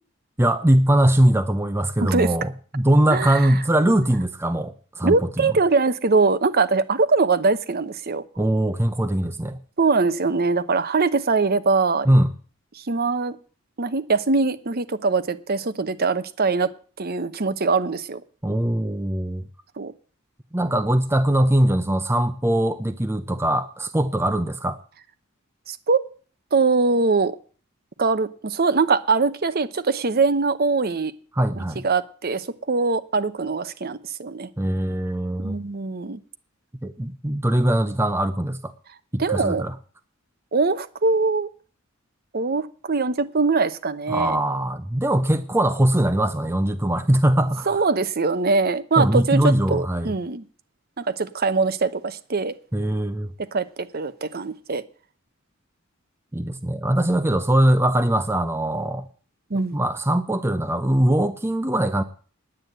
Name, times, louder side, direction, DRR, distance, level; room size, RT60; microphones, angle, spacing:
voice 1, 0.4-5.5 8.4-9.6 12.1-12.3 18.4-19.4 20.5-24.8 31.3-31.8 34.6-35.6 36.8-38.7 39.1-39.7 44.1-47.8 49.0-50.1 52.7-53.3 56.3-59.0 59.7-62.0, right 1 dB, 10° right, 0.6 m, -21 dB
voice 2, 2.0-2.3 3.1-3.5 5.0-8.2 9.8-12.1 12.8-13.4 13.8-16.7 17.0-18.2 19.8-19.9 25.7-26.0 26.5-27.3 28.0-31.1 31.6-34.5 35.4-36.2 39.2-39.6 40.5-41.5 42.3-44.4 47.7-50.4 51.0-52.5 53.5-53.7 53.9-54.8 59.5-59.8, right 4 dB, 50° right, 0.8 m, -22 dB
9.9 x 9.1 x 7.9 m
head